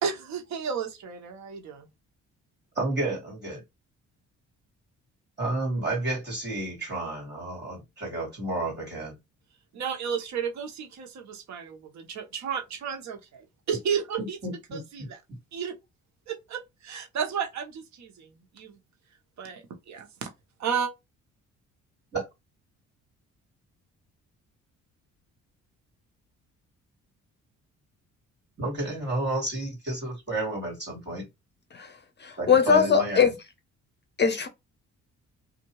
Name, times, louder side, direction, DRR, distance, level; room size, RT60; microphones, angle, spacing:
voice 1, 0.0-1.9 9.7-14.4 14.7-15.2 15.5-15.7 16.3-18.8 19.4-20.3 20.6-20.9, right 7 dB, 65° right, 1.0 m, -33 dB
voice 2, 2.8-3.6 5.4-9.1 14.2-14.8 22.1-22.2 28.6-31.3 32.4-33.3, right 2 dB, 35° right, 1.9 m, -31 dB
voice 3, 31.7-33.3 34.2-34.5, left 6 dB, 35° left, 0.6 m, -22 dB
2.7 x 2.6 x 2.9 m
cardioid pair, 90°, 30 cm